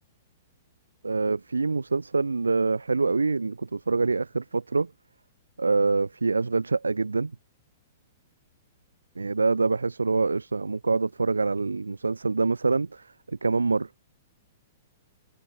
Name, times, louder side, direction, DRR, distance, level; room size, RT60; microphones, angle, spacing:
voice 1, 1.0-4.9 5.6-7.3 9.2-13.9, right 3 dB, 80° right, 0.3 m, -25 dB
figure-of-eight pair, 110°, 0 cm